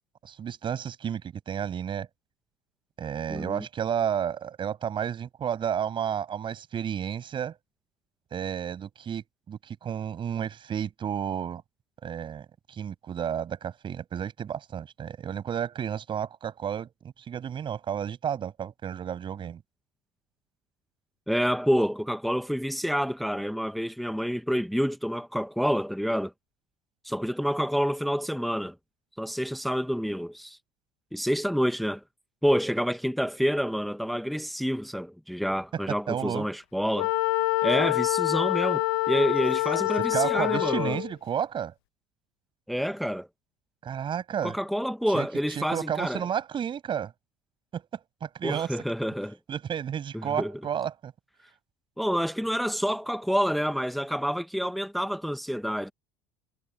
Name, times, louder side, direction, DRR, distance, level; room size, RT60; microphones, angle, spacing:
voice 1, 0.2-2.1 3.0-7.6 8.3-11.6 12.0-16.9 17.2-19.6 35.7-36.5 40.0-41.7 43.8-44.6 45.1-47.1 47.7-47.8 48.2-48.8 49.5-51.1, right 8 dB, 40° right, 7.7 m, -32 dB
voice 2, 3.3-3.6 21.3-26.3 27.0-28.7 29.2-30.6 31.1-32.0 32.4-37.1 37.6-38.8 39.1-41.0 42.7-43.3 44.4-46.3 48.4-49.4 50.1-50.5 52.0-55.9, equal, ahead, 1.6 m, -28 dB
Wind instrument woodwind instrument, 37.0-41.1, left 21 dB, 70° left, 1.9 m, -26 dB
figure-of-eight pair, 70°, 13 cm